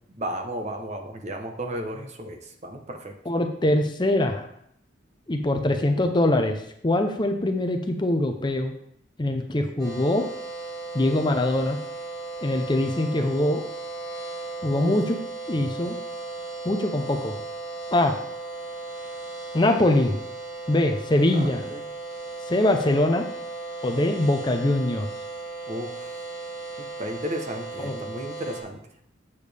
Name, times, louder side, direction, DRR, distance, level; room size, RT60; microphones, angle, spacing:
voice 1, 0.1-3.1 14.7-14.9 21.3-21.8 25.7-26.2 26.8-28.8, right 1 dB, 35° right, 4 dB, 0.9 m, -34 dB
voice 2, 3.3-4.5 5.3-6.6 6.8-8.7 9.2-10.2 10.9-11.8 12.4-13.6 14.6-15.2 15.5-15.9 16.6-17.3 17.9-18.1 19.5-20.1 20.7-21.7 22.5-23.3 23.8-25.1 27.8-28.0, left 1 dB, 25° left, 5 dB, 0.6 m, -23 dB
sound 1, 9.8-28.6, right 3 dB, 15° right, 3.1 m, -36 dB
8.3 x 6.9 x 3.4 m, 0.72 s
head